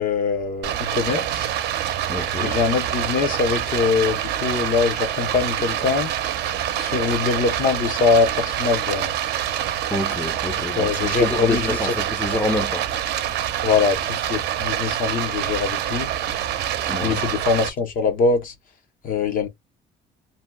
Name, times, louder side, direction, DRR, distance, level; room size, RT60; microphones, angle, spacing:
voice 1, 0.0-1.5 2.4-6.1 6.8-9.1 10.8-11.9 13.6-16.1 17.0-18.5 19.0-19.5, left 5 dB, 55° left, 0.8 m, -23 dB
Stream, 0.6-17.7, right 11 dB, 75° right, 0.6 m, -26 dB
voice 2, 2.1-2.6 9.9-12.8 16.9-17.2, left 2 dB, 10° left, 0.5 m, -27 dB
2.7 x 2.2 x 3.4 m
cardioid pair, 110°, 17 cm